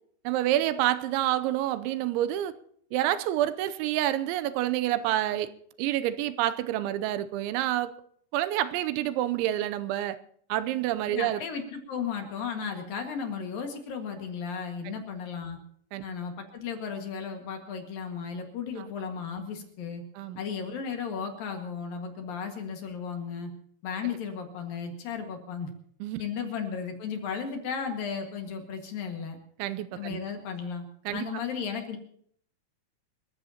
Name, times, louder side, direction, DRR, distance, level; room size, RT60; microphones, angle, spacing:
voice 1, 0.2-2.5 2.9-5.5 5.8-7.9 8.3-10.2 10.5-11.4 15.9-16.0 20.2-20.4 26.0-26.2 29.6-30.2 31.1-31.2, right 13 dB, 85° right, 13 dB, 3.0 m, -28 dB
voice 2, 11.1-15.6 16.0-20.0 20.4-23.5 23.8-25.7 26.2-29.4 29.9-30.8 31.1-32.0, left 6 dB, 60° left, 4 dB, 3.1 m, -35 dB
27.5 x 14.5 x 2.9 m, 0.64 s
omnidirectional pair, 5.3 m